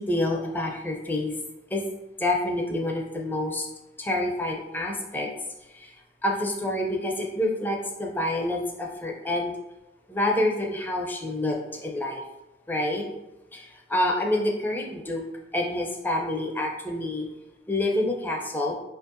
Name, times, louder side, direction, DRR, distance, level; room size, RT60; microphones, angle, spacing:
voice 1, 0.0-1.3 1.7-1.8 2.2-3.7 4.0-5.3 5.7-5.9 6.2-9.5 10.1-12.2 12.7-13.0 13.5-15.2 15.5-17.3 17.7-18.7, left 1 dB, 10° left, 0 dB, 0.4 m, -27 dB
5.1 x 2.6 x 2.5 m, 0.99 s
head